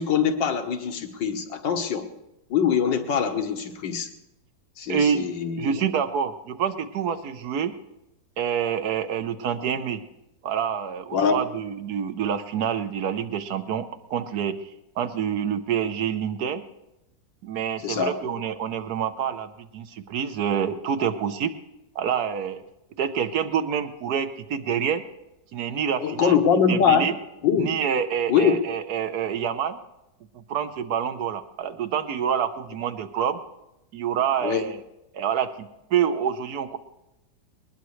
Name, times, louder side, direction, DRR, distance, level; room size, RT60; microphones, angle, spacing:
voice 1, 0.0-2.1 2.5-4.1 4.8-5.8 11.1-11.4 17.8-18.2 26.0-27.1 27.4-27.7 28.3-28.6 34.4-34.7, left 7 dB, 85° left, 5 dB, 2.0 m, -23 dB
voice 2, 4.9-5.3 5.6-7.7 8.4-10.0 10.4-14.7 15.0-16.6 17.4-21.5 21.9-22.6 23.0-25.0 25.5-26.3 26.7-27.1 27.6-29.8 30.3-33.4 33.9-34.8 35.1-36.8, right 8 dB, 60° right, 10 dB, 1.4 m, -27 dB
21.5 x 19.5 x 3.2 m, 0.90 s
omnidirectional pair, 1.9 m